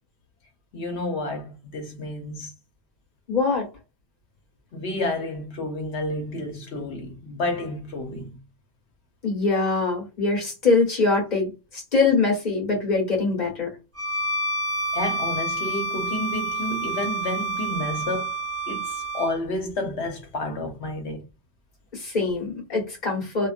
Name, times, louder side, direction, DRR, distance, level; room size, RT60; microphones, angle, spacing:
voice 1, 0.7-2.5 4.7-8.4 14.9-18.3 18.7-21.2, left 1 dB, 85° left, 1.2 m, -30 dB
voice 2, 3.3-3.7 9.2-13.7 21.9-23.5, left 3 dB, 45° left, 1.7 m, -23 dB
Bowed string instrument, 14.0-19.4, right 2 dB, 15° right, 0.8 m, -28 dB
3.0 x 2.4 x 2.4 m
omnidirectional pair, 1.1 m